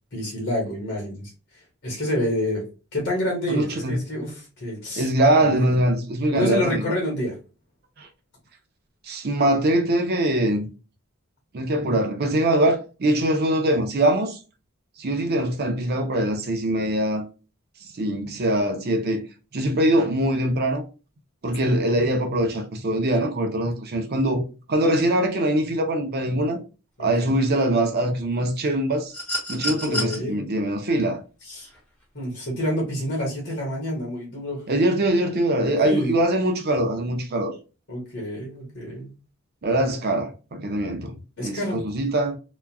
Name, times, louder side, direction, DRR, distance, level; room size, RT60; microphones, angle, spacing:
voice 1, 0.1-2.6 2.9-5.7 6.3-7.4 21.6-21.8 27.0-27.3 29.6-30.4 31.4-31.7 32.1-34.6 35.8-36.1 37.9-39.2 41.4-41.8, equal, 55° left, 1.2 m, -28 dB
voice 2, 3.5-4.0 5.0-7.0 8.0-8.1 9.0-10.7 11.5-14.4 15.0-17.2 17.9-19.2 19.5-20.8 21.4-26.6 27.0-29.1 29.5-31.2 34.7-37.5 39.6-42.4, right 1 dB, 50° right, 0.6 m, -23 dB
sound 1, 29.1-30.2 31.7-31.8, left 1 dB, 5° left, 0.9 m, -29 dB
3.0 x 2.3 x 2.3 m
head